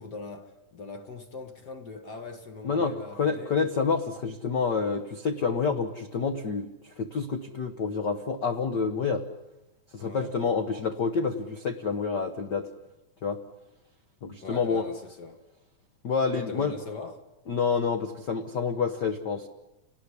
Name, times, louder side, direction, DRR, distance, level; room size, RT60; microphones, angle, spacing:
voice 1, 0.0-3.5 10.0-10.6 14.4-15.4 16.3-17.3, left 3 dB, 40° left, 1.6 m, -41 dB
voice 2, 2.6-9.2 9.9-12.7 13.2-13.4 14.2-14.8 16.0-16.8 17.5-19.5, left 5 dB, 70° left, 1.0 m, -28 dB
29.0 x 19.0 x 9.9 m
omnidirectional pair, 3.9 m